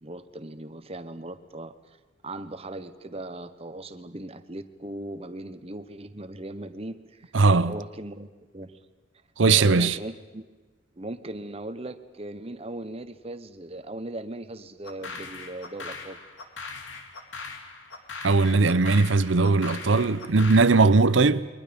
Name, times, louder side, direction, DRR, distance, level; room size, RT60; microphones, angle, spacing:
voice 1, 0.0-1.7 2.2-7.3 7.6-8.8 9.6-10.4 11.0-16.2, right 1 dB, 30° right, 1.0 m, -38 dB
voice 2, 7.3-7.8 9.4-10.0 18.2-21.5, right 3 dB, 70° right, 0.7 m, -19 dB
sound 1, 14.8-20.8, left 4 dB, 70° left, 2.2 m, -40 dB
29.0 x 22.5 x 5.3 m
head